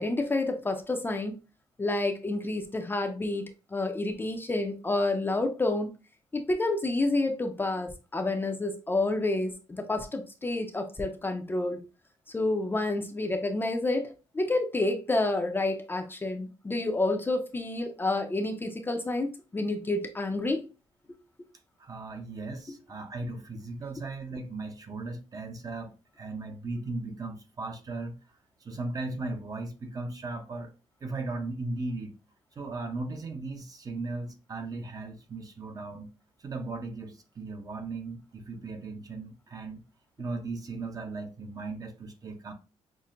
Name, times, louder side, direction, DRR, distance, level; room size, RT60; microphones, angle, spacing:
voice 1, 0.0-1.4 1.8-5.9 6.3-11.8 12.3-20.7, left 2 dB, 20° left, 0.5 m, -29 dB
voice 2, 21.8-30.7 31.0-32.2 32.5-36.1 36.4-39.8 40.2-42.5, right 3 dB, 35° right, 0.7 m, -37 dB
5.8 x 2.1 x 2.5 m
cardioid pair, 105°, 11 cm